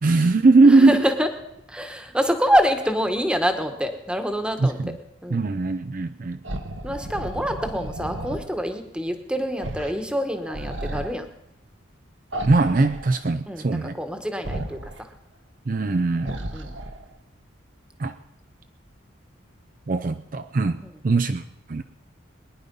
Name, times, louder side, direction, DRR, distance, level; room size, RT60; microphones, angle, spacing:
voice 1, 0.0-1.0 4.6-5.0 5.3-6.4 12.5-14.0 15.7-16.3 18.0-18.2 19.9-21.8, right 3 dB, 40° right, 9 dB, 0.4 m, -20 dB
voice 2, 0.6-1.3 1.7-4.8 5.2-5.4 6.8-11.3 13.5-15.1 16.2-16.8 20.8-20.9, equal, 5° right, 7 dB, 1.2 m, -26 dB
sound 1, 6.4-8.5 9.6-10.0 10.3-11.1 12.3-13.2 14.4-15.0 16.2-17.1, right 1 dB, 70° right, 1.3 m, -33 dB
22.5 x 10.5 x 5.4 m, 0.85 s
head